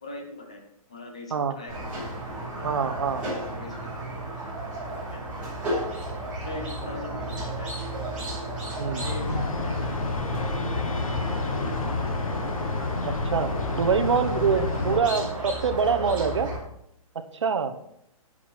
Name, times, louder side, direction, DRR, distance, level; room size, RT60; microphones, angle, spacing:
voice 1, 0.0-3.0 3.3-3.9 5.1-5.2 6.4-8.0 8.6-12.3 14.4-16.4, left 2 dB, 10° left, 5 dB, 0.4 m, -42 dB
Squeak, 1.7-16.6, right 1 dB, 5° right, 3.9 m, -33 dB
voice 2, 2.6-3.3 8.8-9.0 13.0-16.5 17.4-17.7, right 6 dB, 50° right, 7 dB, 1.0 m, -25 dB
sound 1, 9.0-15.0, left 4 dB, 65° left, 1.4 m, -29 dB
10.5 x 7.8 x 4.3 m, 0.76 s
hypercardioid pair, 180°, 19 cm